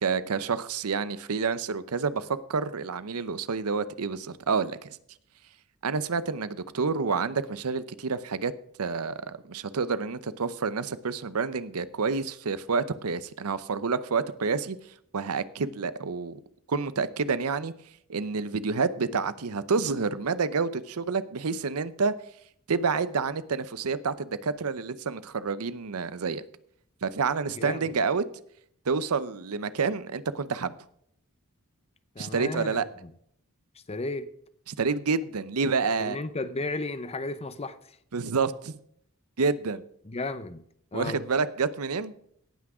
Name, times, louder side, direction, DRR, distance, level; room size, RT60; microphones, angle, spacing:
voice 1, 0.0-4.9 5.8-8.5 8.8-14.8 15.1-16.4 16.7-17.7 18.1-22.1 22.7-26.4 27.0-28.2 28.9-30.8 32.2-32.8 34.8-36.2 38.1-38.8 39.4-39.8 40.9-42.1, right 5 dB, 75° right, 0.7 m, -28 dB
voice 2, 27.5-28.0 32.1-33.1 33.9-34.3 36.0-37.9 40.1-40.6 40.9-41.2, left 2 dB, 30° left, 0.7 m, -34 dB
17.5 x 6.0 x 4.9 m
head